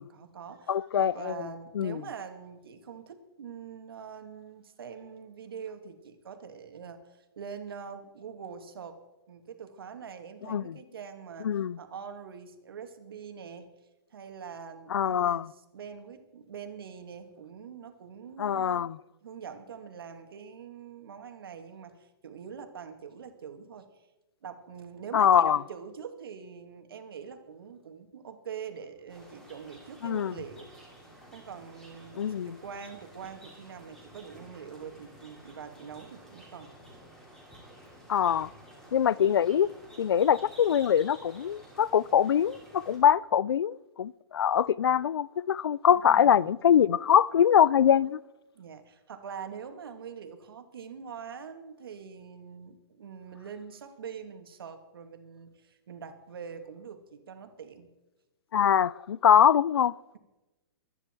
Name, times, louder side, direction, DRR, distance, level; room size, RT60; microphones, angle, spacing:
voice 1, 0.0-9.0 9.3-13.7 14.1-18.9 19.2-23.9 24.4-30.7 31.3-36.7 45.9-46.5 48.5-57.9, right 6 dB, 70° right, 2.3 m, -44 dB
voice 2, 0.7-1.5 1.8-2.0 10.5-10.7 11.4-11.8 14.9-15.5 18.4-19.0 25.1-25.6 30.0-30.3 32.2-32.6 38.1-38.5 38.9-39.7 40.0-48.2 58.5-60.2, left 9 dB, 80° left, 0.5 m, -23 dB
sound 1, 29.1-43.0, right 1 dB, 5° left, 3.2 m, -52 dB
24.0 x 10.0 x 4.6 m
hypercardioid pair, 170°, 13 cm